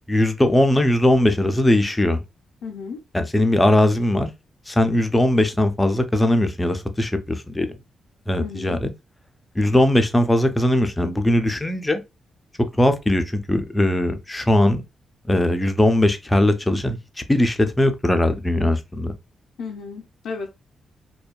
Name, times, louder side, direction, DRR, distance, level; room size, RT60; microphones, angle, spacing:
voice 1, 0.1-2.2 3.1-4.3 4.7-7.7 8.3-8.9 9.6-12.0 12.7-14.8 15.3-17.0 17.3-19.1, left 1 dB, 15° left, 0.4 m, -19 dB
voice 2, 2.6-3.0 8.4-8.8 19.6-20.5, left 5 dB, 90° left, 0.5 m, -33 dB
2.6 x 2.2 x 2.2 m
cardioid pair, 80°, 0 cm